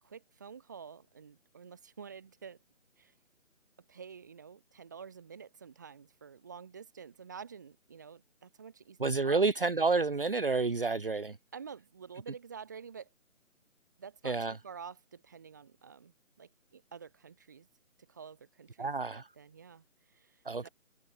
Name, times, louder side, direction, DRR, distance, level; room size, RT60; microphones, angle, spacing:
voice 1, 0.0-2.6 3.0-3.1 3.9-9.0 9.2-9.5 11.5-13.1 14.0-17.7 18.1-20.7, right 6 dB, 15° right, 2.5 m, -49 dB
voice 2, 9.0-11.4 14.2-14.6 18.8-19.3 20.4-20.7, right 4 dB, 45° right, 1.1 m, -29 dB
hypercardioid pair, 180°, 39 cm